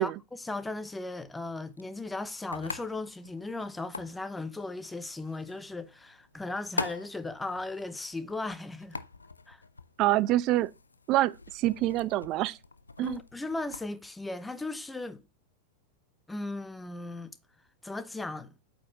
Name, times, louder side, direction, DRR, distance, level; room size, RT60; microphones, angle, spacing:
voice 1, 0.4-9.0 9.5-9.6 13.0-15.2 16.3-17.3 17.8-18.5, left 2 dB, 10° left, 0.8 m, -37 dB
sound 1, 1.4-13.9, left 3 dB, 80° left, 0.4 m, -43 dB
voice 2, 10.0-10.7 11.1-12.6 13.0-13.2, right 16 dB, 40° right, 0.4 m, -26 dB
8.4 x 5.3 x 3.0 m
figure-of-eight pair, 90°, 0 cm